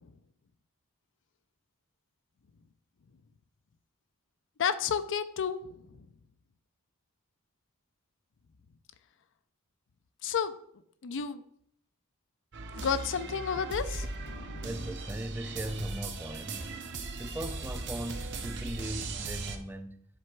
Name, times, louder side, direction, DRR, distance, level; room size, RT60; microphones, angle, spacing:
voice 1, 4.6-5.6 6.0-6.1 10.2-10.5 11.0-11.4 12.7-14.7, left 7 dB, 60° left, 0.5 m, -31 dB
sound 1, 12.5-19.6, right 3 dB, 55° right, 0.8 m, -38 dB
voice 2, 14.6-16.9 17.2-20.1, right 1 dB, 10° right, 0.4 m, -38 dB
7.4 x 3.4 x 4.7 m
head